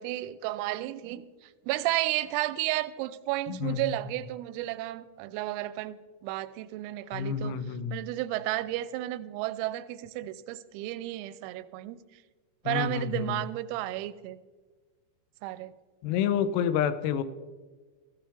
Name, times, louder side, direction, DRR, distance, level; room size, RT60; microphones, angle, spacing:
voice 1, 0.0-7.6 7.9-12.0 12.7-14.4 15.4-15.8, right 16 dB, 90° right, 15 dB, 3.3 m, -33 dB
voice 2, 3.5-4.0 7.1-8.0 12.7-13.4 16.0-17.2, left 8 dB, 85° left, 12 dB, 3.5 m, -29 dB
18.0 x 15.0 x 3.4 m, 1.4 s
omnidirectional pair, 5.9 m